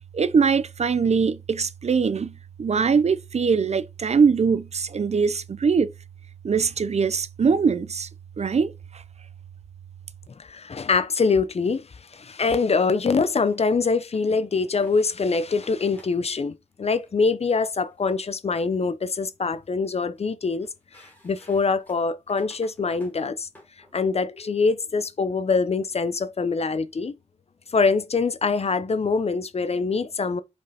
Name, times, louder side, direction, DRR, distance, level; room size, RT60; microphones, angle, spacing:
voice 1, 0.1-5.9 6.4-8.1 8.4-9.0, right 5 dB, 60° right, 0.6 m, -22 dB
voice 2, 10.4-11.9 12.1-20.7 21.2-23.5 23.9-27.2 27.7-30.4, left 4 dB, 55° left, 0.7 m, -24 dB
sound 1, 13.3-13.6 14.1-14.2 14.6-15.0 15.6-16.2 16.8-17.1 17.8-18.0 18.5-19.2 19.5-20.2 20.6-24.1, left 1 dB, 15° left, 3.6 m, -53 dB
6.3 x 5.3 x 4.2 m
wide cardioid pair, 100°, 13 cm